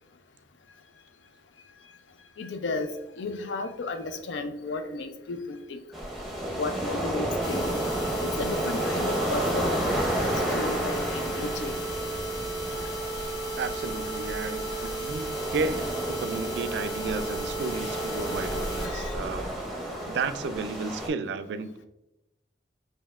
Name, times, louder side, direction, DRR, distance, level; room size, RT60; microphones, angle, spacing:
voice 1, 2.4-5.8 6.6-7.8 8.2-11.8 18.8-19.2, left 3 dB, 85° left, 0.5 m, -34 dB
sound 1, 5.9-21.1, equal, ahead, 0.7 m, -32 dB
sound 2, 7.4-18.9 19.3-19.4 19.8-19.9 20.3-20.4, right 2 dB, 60° left, 0.8 m, -34 dB
voice 2, 13.6-19.5 20.1-21.9, right 4 dB, 65° right, 0.3 m, -33 dB
5.2 x 2.7 x 2.4 m
head